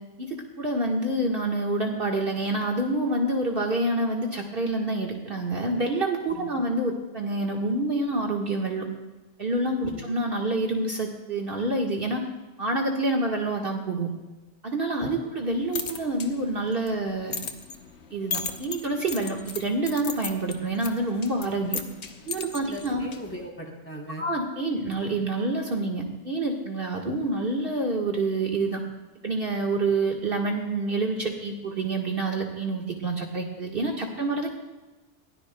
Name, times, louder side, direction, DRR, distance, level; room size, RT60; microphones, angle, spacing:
voice 1, 0.2-8.9 9.4-12.2 12.6-14.1 14.6-17.5 18.1-21.8 22.3-23.1 24.2-28.8 29.2-34.5, right 2 dB, 50° right, -1 dB, 1.7 m, -27 dB
voice 2, 6.3-6.6 9.9-10.1 15.0-15.3 22.6-24.3, equal, 10° left, -1 dB, 3.0 m, -40 dB
sound 1, 15.4-23.5, left 5 dB, 65° left, 1.3 m, -38 dB
23.0 x 16.5 x 2.2 m, 1.2 s
omnidirectional pair, 1.2 m